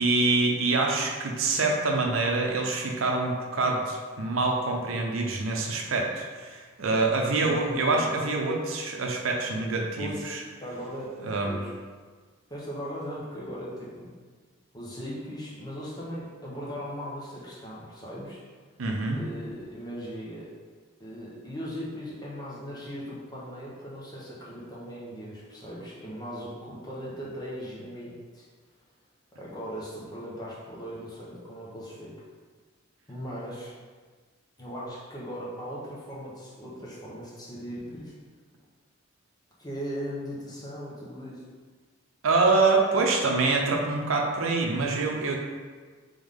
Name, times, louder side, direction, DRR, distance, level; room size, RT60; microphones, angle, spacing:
voice 1, 0.0-10.4 11.2-11.6 18.8-19.2 42.2-45.4, right 3 dB, 80° right, 1 dB, 0.6 m, -25 dB
voice 2, 7.3-8.1 10.0-10.3 10.6-11.2 11.4-11.7 12.5-14.1 14.7-18.4 19.1-20.5 21.0-28.5 29.4-32.1 33.1-33.7 34.6-38.1 39.6-41.4, equal, 20° left, -7 dB, 1.1 m, -38 dB
3.7 x 3.5 x 3.6 m, 1.5 s
head